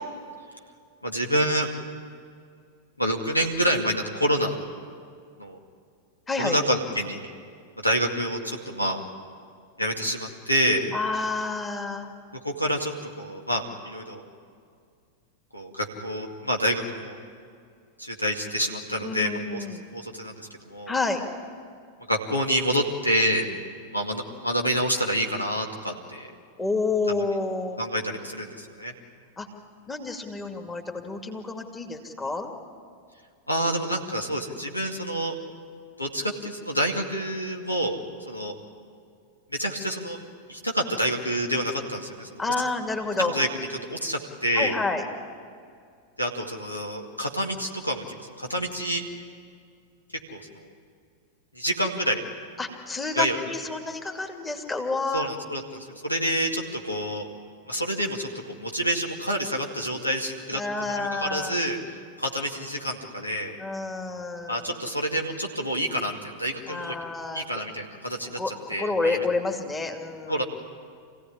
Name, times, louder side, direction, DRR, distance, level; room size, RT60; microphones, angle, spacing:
voice 1, 1.0-1.7 3.0-4.6 5.4-5.6 6.4-7.3 7.8-9.0 9.8-10.9 12.4-14.2 15.5-17.2 18.0-20.9 22.1-23.5 23.9-26.3 27.8-28.9 33.5-35.3 36.0-38.0 38.3-38.5 39.5-40.2 40.5-42.5 43.2-43.5 43.9-44.8 46.2-49.0 50.3-50.7 51.5-52.2 53.1-53.4 55.1-57.3 57.7-60.6 60.9-63.6 64.5-67.0 67.3-69.2 70.3-70.4, equal, 85° left, 2 dB, 2.2 m, -28 dB
voice 2, 6.3-6.6 10.9-12.1 19.0-19.8 20.9-21.2 26.6-27.8 29.4-29.5 29.9-32.5 42.4-43.4 44.5-45.0 52.6-55.3 60.5-61.6 63.6-64.7 66.7-67.4 68.4-70.4, left 3 dB, 15° left, 3 dB, 2.4 m, -29 dB
26.5 x 16.5 x 9.8 m, 2.2 s
figure-of-eight pair, 90°, 0 cm